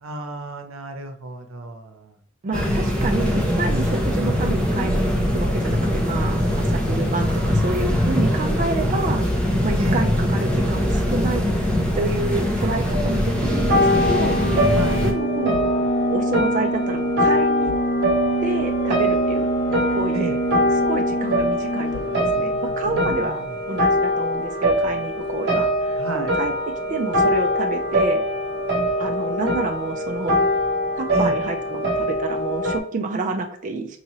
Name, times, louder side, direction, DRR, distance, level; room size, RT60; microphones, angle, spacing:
voice 1, 0.0-2.1 9.8-10.1 14.7-15.0 20.1-20.4 22.9-23.6 26.0-26.3 31.1-31.4, right 2 dB, 90° right, 5 dB, 0.7 m, -31 dB
voice 2, 2.4-11.4 11.9-14.4 15.0-15.6 16.1-17.7 18.4-19.5 19.9-20.3 20.7-28.2 29.0-30.4 31.0-34.0, right 3 dB, 40° right, 3 dB, 0.4 m, -29 dB
sound 1, 2.5-15.1, equal, 5° left, 0.7 m, -22 dB
sound 2, 10.5-23.3, right 2 dB, 50° left, 0.4 m, -27 dB
sound 3, 13.5-32.8, left 1 dB, 60° right, 0.9 m, -23 dB
4.6 x 2.8 x 3.0 m, 0.63 s
head